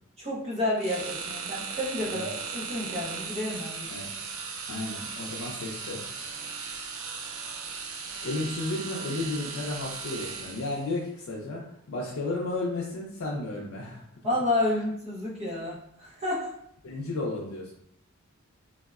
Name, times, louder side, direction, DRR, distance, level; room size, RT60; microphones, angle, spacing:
voice 1, 0.2-3.9 14.2-16.5, left 1 dB, 30° right, -5 dB, 0.6 m, -30 dB
sound 1, 0.8-10.9, right 5 dB, 75° right, 0.4 m, -37 dB
voice 2, 4.7-6.0 8.2-11.6 11.9-14.1 16.8-17.7, left 2 dB, 85° left, -2 dB, 0.4 m, -33 dB
3.4 x 2.0 x 2.3 m, 0.73 s
head